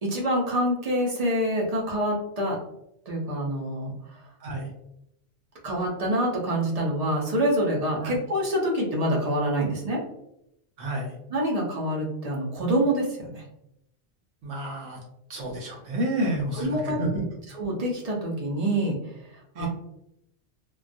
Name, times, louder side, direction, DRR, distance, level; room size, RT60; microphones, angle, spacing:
voice 1, 0.0-2.6 3.1-4.2 5.6-10.0 11.3-13.4 16.5-17.0 17.5-19.7, right 1 dB, 45° right, -3 dB, 0.5 m, -26 dB
voice 2, 4.4-4.7 8.0-8.1 10.8-11.1 14.4-15.0 15.3-17.2 19.6-19.7, right 1 dB, 75° right, -1 dB, 0.9 m, -30 dB
2.2 x 2.2 x 2.5 m, 0.81 s
omnidirectional pair, 1.1 m